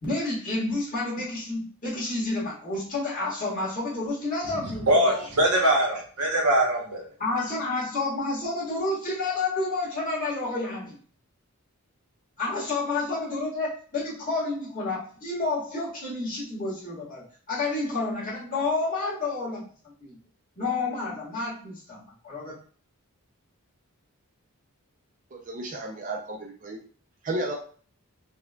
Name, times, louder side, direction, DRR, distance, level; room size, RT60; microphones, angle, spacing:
voice 1, 0.0-5.3 7.2-11.0 12.4-19.6 20.0-20.2 20.6-22.5, left 3 dB, 40° left, 1.5 m, -30 dB
voice 2, 4.9-7.0, right 1 dB, 90° right, 1.0 m, -22 dB
voice 3, 25.3-26.8 27.2-27.5, right 2 dB, 35° right, 0.4 m, -33 dB
4.3 x 2.2 x 2.2 m
head